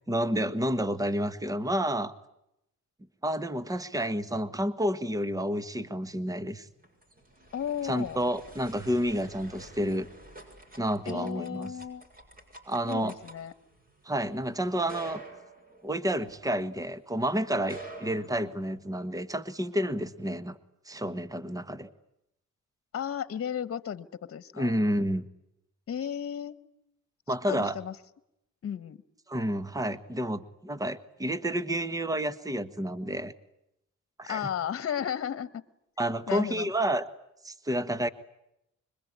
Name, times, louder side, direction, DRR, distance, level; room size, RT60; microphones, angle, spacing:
voice 1, 0.1-2.1 3.2-6.7 7.8-10.1 10.8-11.7 12.7-13.2 14.0-15.2 15.8-20.6 20.8-21.9 24.5-25.3 27.3-27.8 29.3-33.3 34.2-34.5 36.0-37.1 37.4-38.1, equal, 10° right, 13 dB, 1.5 m, -30 dB
sound 1, 6.6-16.9 17.5-19.0, right 2 dB, 30° right, 7.0 m, -49 dB
voice 2, 7.5-8.2 11.1-12.1 12.9-13.5 22.9-24.7 25.9-26.6 27.4-27.9 28.6-29.0 34.3-35.6 36.3-36.7, left 9 dB, 50° left, 15 dB, 1.4 m, -34 dB
25.5 x 23.0 x 9.6 m, 0.82 s
cardioid pair, 90°, 30 cm